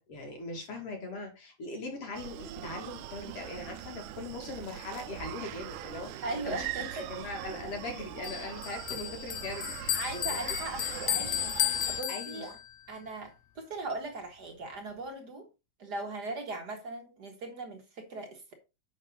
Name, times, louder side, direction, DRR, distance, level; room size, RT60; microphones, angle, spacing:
voice 1, 0.0-6.6 6.9-10.0 10.3-10.4 12.1-12.5, left 2 dB, 50° left, 2.7 m, -40 dB
Screaming, 2.1-12.0, right 12 dB, 85° right, 2.2 m, -41 dB
voice 2, 6.2-7.1 9.9-12.5 12.9-15.5 15.8-18.5, right 2 dB, 60° right, 1.0 m, -39 dB
Bell, 8.2-12.8, left 14 dB, 80° left, 1.5 m, -33 dB
8.3 x 5.9 x 3.8 m
omnidirectional pair, 3.6 m